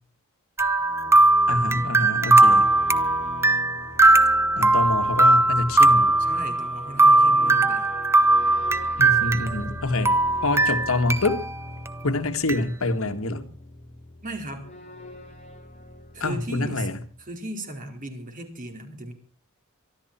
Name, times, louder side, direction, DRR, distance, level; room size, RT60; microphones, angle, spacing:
sound 1, 0.6-17.3, left 2 dB, 30° left, 3.5 m, -41 dB
sound 2, 0.6-9.8 10.1-11.5 11.9-12.0 12.5-12.6, right 2 dB, 10° right, 0.9 m, -19 dB
voice 1, 1.5-2.7 4.6-6.2 9.0-11.5 12.0-13.5 16.2-17.0, left 2 dB, 80° left, 1.8 m, -26 dB
voice 2, 6.2-7.9 14.2-14.7 16.1-16.9 17.2-19.1, right 1 dB, 40° right, 4.5 m, -36 dB
24.5 x 13.0 x 4.5 m
head